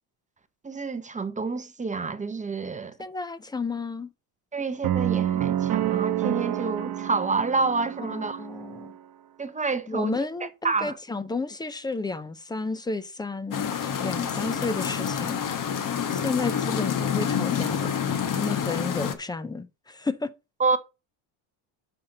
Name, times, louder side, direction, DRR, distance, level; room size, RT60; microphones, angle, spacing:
voice 1, 0.6-3.0 4.5-8.4 9.4-10.2 10.6-11.0 20.6-20.8, right 4 dB, 15° right, 0.7 m, -28 dB
voice 2, 3.0-4.1 8.1-8.9 9.9-15.4 16.1-17.9 18.3-20.3, left 3 dB, 10° left, 0.3 m, -32 dB
sound 1, 4.8-9.0, right 11 dB, 45° right, 1.0 m, -28 dB
sound 2, 13.5-19.1, left 8 dB, 40° left, 1.2 m, -28 dB
5.9 x 5.4 x 6.4 m
cardioid pair, 120°, 49 cm